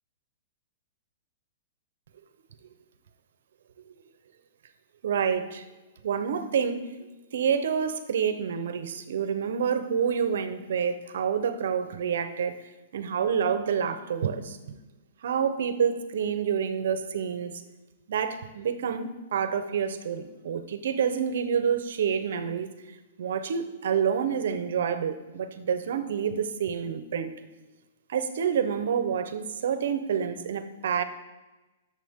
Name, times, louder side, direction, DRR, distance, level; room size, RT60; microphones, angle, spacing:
voice 1, 5.0-5.7 6.0-6.9 7.3-12.6 12.9-14.8 15.2-17.6 18.1-22.7 23.2-27.3 28.1-31.0, right 7 dB, 75° right, 11 dB, 0.8 m, -28 dB
11.5 x 7.1 x 3.6 m, 1.1 s
hypercardioid pair, 155°, 0 cm